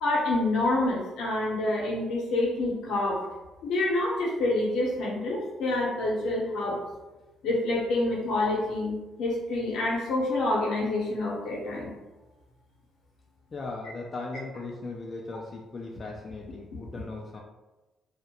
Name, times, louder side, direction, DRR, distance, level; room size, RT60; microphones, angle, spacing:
voice 1, 0.0-3.2 3.6-6.8 7.4-11.9, left 2 dB, 80° left, -3 dB, 0.7 m, -27 dB
voice 2, 13.5-17.4, left 3 dB, 40° left, 0 dB, 0.3 m, -38 dB
2.4 x 2.1 x 2.8 m, 1.1 s
cardioid pair, 90°, 0 cm